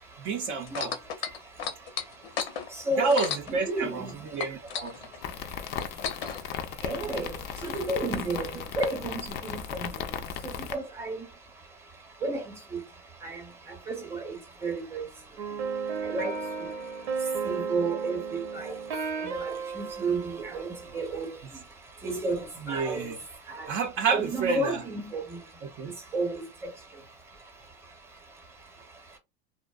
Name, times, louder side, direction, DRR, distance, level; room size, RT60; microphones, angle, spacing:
voice 1, 0.2-0.9 3.0-4.0 4.3-4.9 22.7-23.2 23.7-24.8 25.6-25.9, right 4 dB, 45° right, 0.5 m, -29 dB
sound 1, 0.7-4.1 4.4-6.4 7.2-7.3, left 7 dB, 80° left, 0.7 m, -34 dB
voice 2, 3.7-4.1 6.8-7.3 7.6-9.2 9.8-9.9 10.4-11.2 12.2-12.4 12.7-12.8 13.2-13.4 13.9-14.3 14.6-15.0 16.1-16.3 17.4-18.7 19.2-20.7 20.9-21.3 22.0-22.4 22.7-23.0 23.6-23.7 24.1-25.2 26.1-26.4, right 3 dB, 10° right, 0.8 m, -31 dB
sound 2, 5.2-10.7, left 8 dB, 35° left, 0.4 m, -36 dB
sound 3, 15.4-21.0, right 5 dB, 90° right, 0.9 m, -34 dB
2.6 x 2.1 x 2.3 m
supercardioid pair, 115°, 30 cm